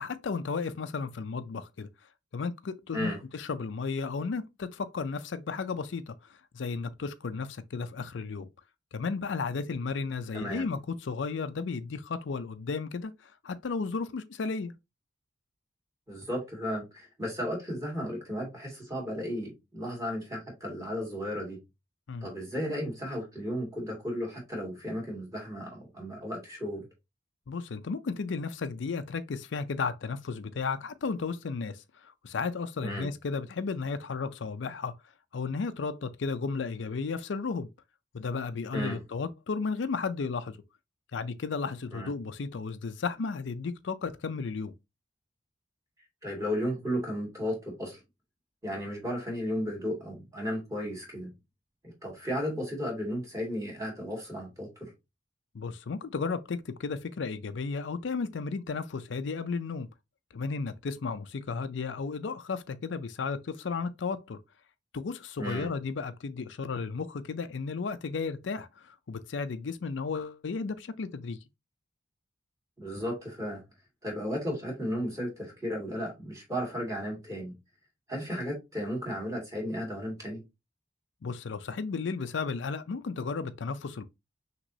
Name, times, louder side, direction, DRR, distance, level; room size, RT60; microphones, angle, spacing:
voice 1, 0.0-1.9 2.3-8.5 8.9-14.7 22.1-22.3 27.5-34.9 35.3-37.7 38.1-40.6 41.1-44.7 55.5-59.9 60.3-64.4 64.9-71.4 81.2-84.1, left 4 dB, 70° left, 0.5 m, -34 dB
voice 2, 16.1-21.6 22.2-26.9 32.8-33.1 38.7-39.0 41.9-42.1 46.2-48.0 48.6-51.3 51.8-54.9 65.4-65.7 72.8-73.6 74.0-77.5 78.1-80.4, equal, 15° right, 2.2 m, -34 dB
6.0 x 2.9 x 2.7 m
head